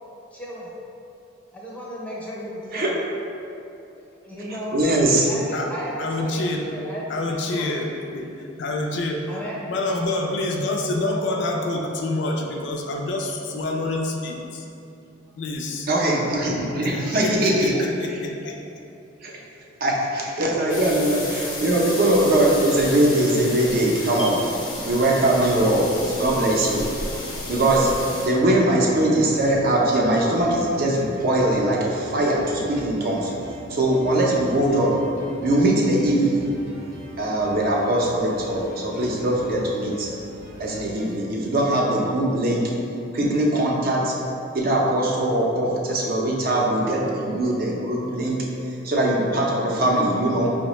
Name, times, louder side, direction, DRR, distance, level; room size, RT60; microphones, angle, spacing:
voice 1, 0.3-0.7 1.5-3.0 4.2-4.8 5.3-7.8 9.3-10.2, equal, 5° left, -5 dB, 0.5 m, -34 dB
voice 2, 4.7-5.3 15.9-17.7 18.1-18.2 19.2-19.3 19.8-24.4 24.8-26.9 27.5-27.9 28.2-33.3 33.7-35.0 35.4-36.5 37.2-40.1 40.6-42.7 43.1-44.2 44.5-48.5 48.8-50.5, right 1 dB, 50° right, -2 dB, 0.5 m, -21 dB
voice 3, 6.0-6.7 7.1-8.3 8.6-9.2 9.7-14.6 15.4-15.9 16.5-18.6, left 2 dB, 60° left, 1 dB, 0.4 m, -27 dB
sound 1, 20.7-28.3, left 2 dB, 85° left, 0.8 m, -33 dB
sound 2, 25.2-41.2, right 1 dB, 90° right, 0.7 m, -42 dB
4.7 x 2.1 x 2.9 m, 2.7 s
head